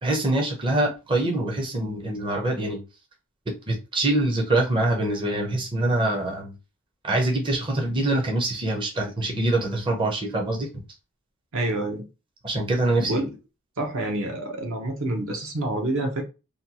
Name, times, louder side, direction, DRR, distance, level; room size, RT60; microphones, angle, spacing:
voice 1, 0.0-2.8 3.7-6.5 7.0-10.7 12.4-13.2, right 2 dB, 20° right, 0.5 m, -24 dB
voice 2, 11.5-12.0 13.0-13.3 13.8-16.2, right 2 dB, 60° right, 0.7 m, -27 dB
2.6 x 2.2 x 2.8 m
head